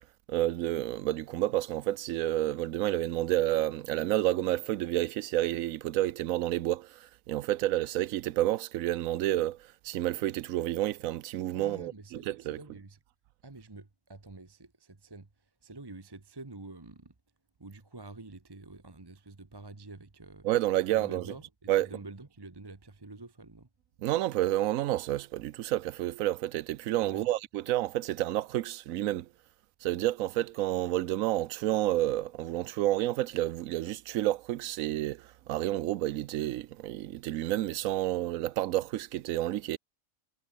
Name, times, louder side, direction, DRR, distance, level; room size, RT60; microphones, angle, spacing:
voice 1, 0.3-12.6 20.4-21.2 21.7-21.9 24.0-29.3 29.8-39.8, right 14 dB, 85° right, 1.0 m, -30 dB
voice 2, 11.5-13.0 13.4-17.1 17.6-20.5 20.9-23.7 27.0-27.3, right 2 dB, 20° right, 1.1 m, -48 dB
omnidirectional pair, 1.4 m